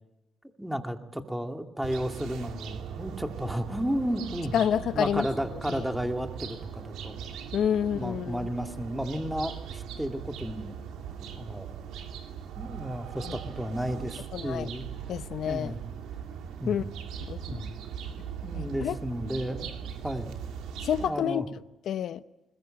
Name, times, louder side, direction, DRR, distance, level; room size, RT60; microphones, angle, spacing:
voice 1, 0.6-4.6 4.9-7.2 7.8-10.7 11.4-11.7 12.6-14.9 15.5-15.8 16.6-16.9 17.5-17.8 18.4-19.7 20.0-20.4 21.0-21.5, equal, 5° right, 2.3 m, -33 dB
sound 1, 1.8-21.1, right 8 dB, 85° right, 2.7 m, -40 dB
voice 2, 4.5-5.3 5.7-5.8 7.5-8.5 13.3-13.4 14.3-14.7 15.1-15.7 16.7-16.8 17.2-17.6 18.5-19.0 20.8-21.5 21.9-22.2, left 9 dB, 70° left, 0.8 m, -29 dB
21.5 x 21.0 x 8.8 m
cardioid pair, 90°, 0 cm